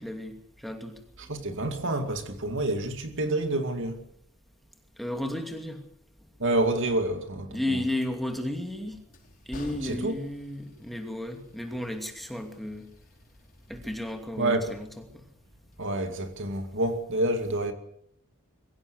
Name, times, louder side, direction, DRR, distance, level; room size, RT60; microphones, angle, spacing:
voice 1, 0.0-1.0 5.0-5.8 7.5-9.0 9.5-12.9 13.7-14.9, left 1 dB, ahead, 2.6 m, -33 dB
voice 2, 1.2-4.0 6.4-7.8 9.8-10.2 14.4-14.8 15.8-17.7, right 1 dB, 60° right, 2.4 m, -28 dB
Train, 8.3-16.9, left 1 dB, 40° left, 5.1 m, -52 dB
23.0 x 16.0 x 8.1 m
head